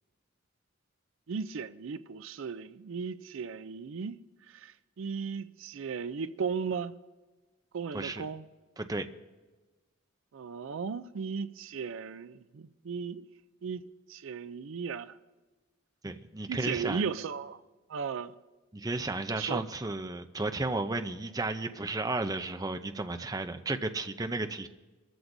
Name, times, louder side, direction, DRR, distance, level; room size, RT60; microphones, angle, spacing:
voice 1, 1.3-4.2 4.5-6.9 7.7-8.4 10.3-13.3 13.6-13.8 14.1-15.2 16.5-17.6 17.9-18.3 19.3-19.6, right 6 dB, 70° right, 0.4 m, -36 dB
voice 2, 7.9-8.3 8.8-9.1 16.0-17.1 18.7-24.7, right 2 dB, 20° right, 0.5 m, -33 dB
23.0 x 14.0 x 2.6 m
head